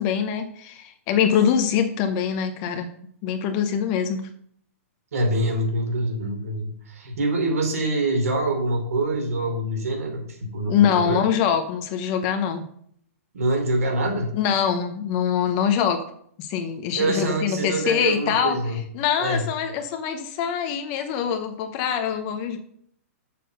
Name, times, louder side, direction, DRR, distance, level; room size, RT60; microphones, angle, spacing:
voice 1, 0.0-2.9 3.2-4.3 10.7-12.6 14.3-16.1 16.4-22.6, left 8 dB, 25° left, 7 dB, 0.8 m, -24 dB
voice 2, 5.1-11.3 13.3-14.4 17.0-18.8 19.2-19.4, right 1 dB, 75° right, 2 dB, 3.1 m, -25 dB
6.8 x 6.0 x 6.6 m, 0.64 s
hypercardioid pair, 165°, 8 cm